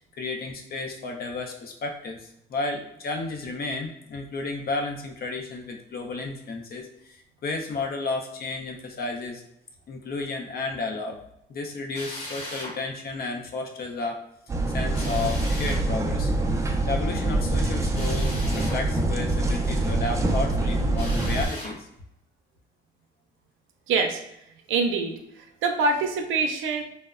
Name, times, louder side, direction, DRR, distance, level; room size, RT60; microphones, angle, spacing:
voice 1, 0.0-9.4 9.9-11.2 11.5-14.2 14.7-16.3 16.9-21.9, left 3 dB, 50° left, 2 dB, 0.5 m, -32 dB
Drill, 11.9-12.8 14.9-15.8 17.9-18.8 20.9-21.8, left 1 dB, 30° left, 1.0 m, -38 dB
sound 1, 14.5-21.5, right 2 dB, 15° right, 0.3 m, -25 dB
voice 2, 23.9-24.2 24.7-25.1 25.6-26.8, right 4 dB, 80° right, 5 dB, 0.4 m, -24 dB
3.0 x 2.0 x 2.4 m, 0.80 s
cardioid pair, 90°, 20 cm